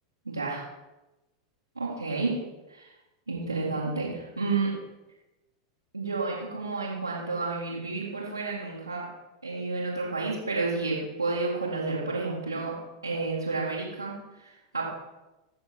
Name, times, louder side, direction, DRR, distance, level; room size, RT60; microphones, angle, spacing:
voice 1, 0.3-0.6 1.8-2.4 2.7-2.9 3.3-4.7 5.9-9.1 9.4-12.7 13.0-14.9, right 3 dB, 85° right, -8 dB, 2.3 m, -31 dB
15.0 x 6.9 x 4.5 m, 1.0 s
figure-of-eight pair, 90°, 2 cm